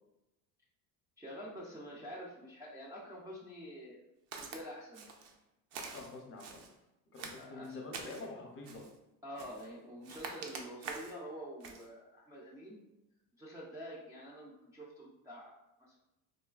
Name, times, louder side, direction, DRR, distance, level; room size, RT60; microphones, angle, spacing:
voice 1, 1.2-4.0 4.4-5.1 7.4-7.8 9.2-12.8 13.4-15.5 15.8-16.0, equal, 10° right, -8 dB, 0.3 m, -47 dB
Walk footsteps, 4.3-4.6 4.9-5.3 5.7-6.7 7.1-8.3 8.6-9.0 9.4-9.7 10.0-11.2 11.6-11.9, right 4 dB, 85° right, 0.6 m, -46 dB
voice 2, 5.9-6.6 7.1-8.8, left 3 dB, 35° left, 1 dB, 0.6 m, -46 dB
3.1 x 2.2 x 2.3 m, 0.94 s
cardioid pair, 120°, 37 cm